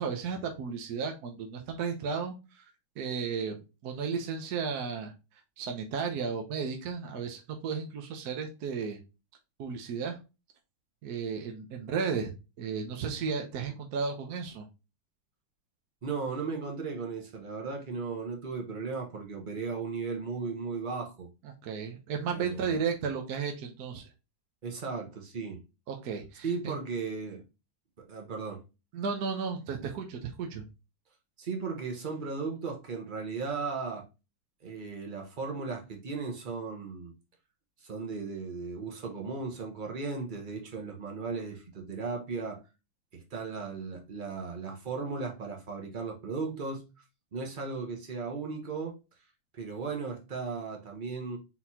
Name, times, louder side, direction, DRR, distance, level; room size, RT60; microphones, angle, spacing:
voice 1, 0.0-2.6 3.0-5.1 5.6-9.0 9.6-10.2 11.0-12.3 12.6-14.6 21.4-24.0 25.9-26.7 28.9-30.6, right 6 dB, 65° right, 1.2 m, -34 dB
voice 2, 16.0-21.3 22.3-22.7 24.6-25.6 26.4-27.4 28.0-28.6 31.4-34.0 34.6-37.1 37.8-42.6 43.1-46.9 47.3-49.0 49.5-51.4, right 4 dB, 35° right, 0.9 m, -36 dB
4.2 x 4.1 x 2.7 m
omnidirectional pair, 2.1 m